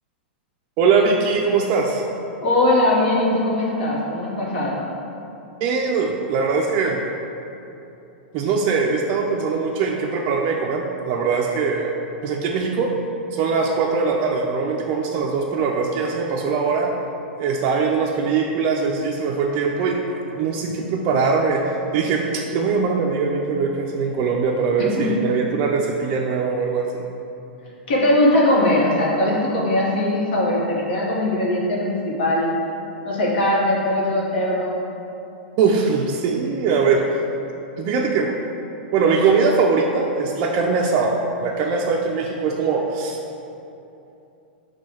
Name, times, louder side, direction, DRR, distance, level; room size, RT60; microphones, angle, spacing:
voice 1, 0.8-2.0 5.6-7.0 8.3-11.9 12.2-12.9 13.3-16.9 17.4-21.6 21.9-22.2 22.5-27.0 35.6-37.1 37.8-38.3 38.9-41.1 41.4-43.2, right 5 dB, 45° right, 0 dB, 0.3 m, -21 dB
voice 2, 2.4-4.8 25.0-25.1 27.9-32.5 33.0-34.8, left 1 dB, 65° left, -5 dB, 1.0 m, -20 dB
6.1 x 2.2 x 2.9 m, 2.8 s
hypercardioid pair, 110°, 6 cm